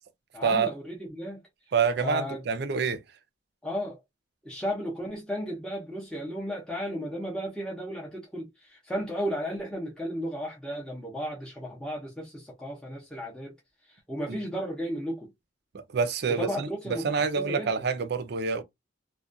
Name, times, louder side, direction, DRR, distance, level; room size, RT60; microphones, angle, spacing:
voice 1, 0.3-1.4 2.0-2.4 3.6-4.0 4.4-13.6 13.9-15.3 16.3-17.9, equal, 5° left, 0.6 m, -34 dB
voice 2, 1.7-3.0 14.3-14.4 15.7-18.6, right 5 dB, 55° right, 0.4 m, -27 dB
2.3 x 2.1 x 2.5 m
head